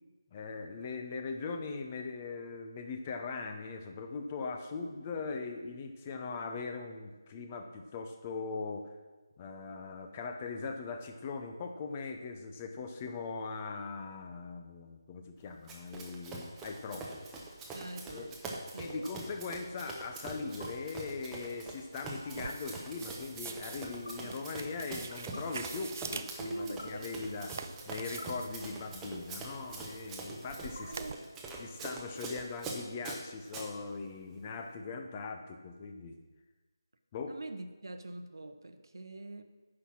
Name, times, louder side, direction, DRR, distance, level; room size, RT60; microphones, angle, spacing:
voice 1, 0.3-8.9 9.4-17.4 18.1-18.4 18.8-27.5 27.8-31.0 31.6-36.2 37.1-37.3, left 4 dB, 20° left, 5 dB, 0.7 m, -40 dB
Run, 15.7-33.7, right 2 dB, 10° right, 0.8 m, -44 dB
sound 1, 16.7-17.0 18.8-19.1 20.4-20.7 22.2-22.5 23.6-24.1 24.9-25.4 26.4-26.9 27.8-28.3 29.3-29.9 30.6-31.4, left 2 dB, 80° left, 1.2 m, -50 dB
voice 2, 17.7-19.1 19.4-19.5 24.2-24.4 26.4-27.4 28.2-29.0 30.9-31.3 37.3-39.4, right 2 dB, 70° right, 8 dB, 0.9 m, -44 dB
sound 2, 22.3-31.1, right 5 dB, 35° right, 0.4 m, -46 dB
9.7 x 5.6 x 6.1 m, 1.2 s
figure-of-eight pair, 160°, 2 cm